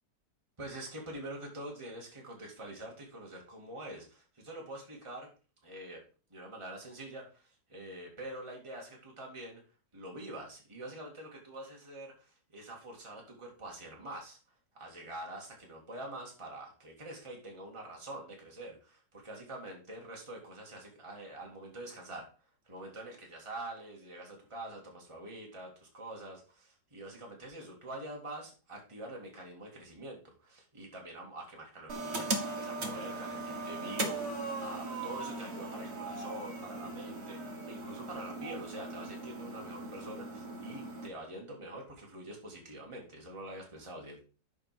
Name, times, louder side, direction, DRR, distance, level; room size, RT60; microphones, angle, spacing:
voice 1, 0.6-5.3 5.6-6.0 6.3-9.6 9.9-14.4 14.7-22.3 22.6-44.2, right 1 dB, 15° right, -1 dB, 2.2 m, -45 dB
sound 1, 31.9-41.1, right 2 dB, 40° right, 1.5 m, -39 dB
7.3 x 5.2 x 5.9 m, 0.35 s
omnidirectional pair, 1.9 m